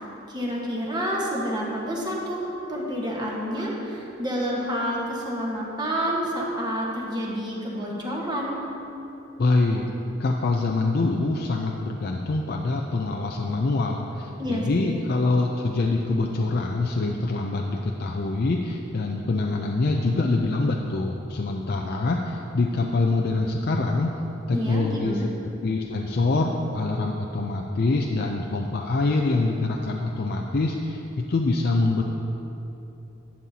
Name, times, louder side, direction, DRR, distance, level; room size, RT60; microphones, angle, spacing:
voice 1, 0.3-8.6 14.4-15.0 24.5-25.3, equal, 20° right, -3 dB, 1.4 m, -29 dB
voice 2, 9.4-9.9 10.2-24.2 24.5-25.3 25.6-31.0 31.3-32.0, left 3 dB, 50° left, 0 dB, 0.5 m, -25 dB
11.0 x 9.7 x 2.8 m, 3.0 s
head